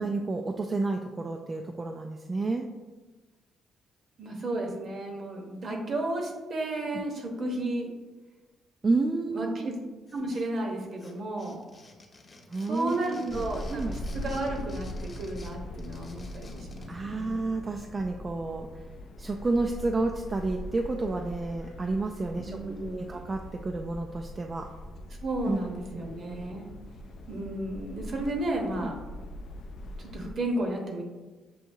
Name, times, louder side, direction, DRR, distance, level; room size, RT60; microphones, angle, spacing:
voice 1, 0.0-2.7 6.8-7.0 8.8-9.7 12.5-13.4 13.7-13.9 16.9-18.8 19.2-24.7 25.5-25.6 25.9-26.0 28.7-28.9, right 3 dB, 30° right, 3 dB, 0.3 m, -30 dB
voice 2, 4.2-7.9 9.3-9.8 10.1-11.6 12.7-17.4 22.4-23.2 25.2-26.7 27.3-28.9 30.0-31.0, right 1 dB, 55° right, 1 dB, 1.0 m, -33 dB
sound 1, 10.1-10.7 11.0-16.9, left 2 dB, 35° left, 0.8 m, -52 dB
sound 2, 13.3-30.3, left 1 dB, 65° left, 0.3 m, -41 dB
6.9 x 2.7 x 2.7 m, 1.3 s
cardioid pair, 90°, 0 cm